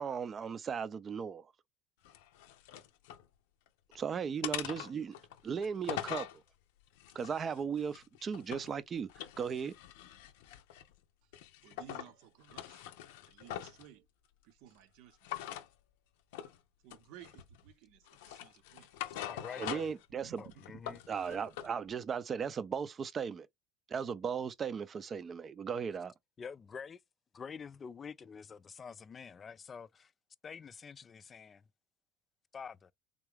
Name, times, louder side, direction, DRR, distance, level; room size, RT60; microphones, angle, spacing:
voice 1, 0.0-1.5 3.9-5.2 5.4-6.3 7.1-9.7 19.6-20.4 21.1-23.5 23.9-26.1, right 6 dB, 35° right, 0.5 m, -37 dB
sound 1, 2.0-3.2 3.7-4.0 4.4-6.4 7.0-8.7 9.1-10.9 11.3-12.1 12.4-13.9 15.2-15.7 16.3-16.6 16.9-17.6 18.1-20.0 20.4-21.7, left 12 dB, 85° left, 0.5 m, -43 dB
voice 2, 11.6-12.9 13.3-14.1 14.4-15.3 16.8-18.9 20.1-20.5 20.9-21.0, right 10 dB, 75° right, 0.7 m, -56 dB
voice 3, 19.2-19.9 20.4-21.0 26.4-27.0 27.3-30.1 30.4-31.7 32.5-32.9, left 6 dB, 30° left, 0.3 m, -47 dB
3.6 x 2.3 x 3.3 m
supercardioid pair, 95°, 0 cm